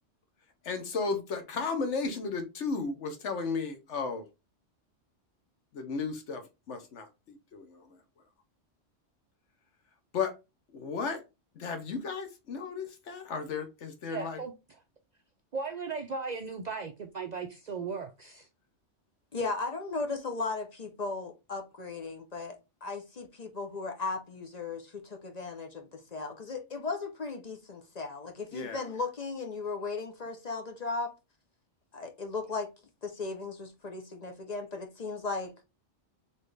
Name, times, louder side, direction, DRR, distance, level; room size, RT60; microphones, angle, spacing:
voice 1, 0.6-4.2 5.7-8.0 10.1-10.3 10.7-11.2 11.6-14.4 28.5-28.8, left 4 dB, 75° left, 1.2 m, -34 dB
voice 2, 14.1-14.5 15.5-18.5, right 5 dB, 60° right, 0.4 m, -37 dB
voice 3, 19.3-31.1 31.9-32.7 33.0-35.5, left 3 dB, 40° left, 0.7 m, -36 dB
4.2 x 3.3 x 3.2 m
omnidirectional pair, 1.2 m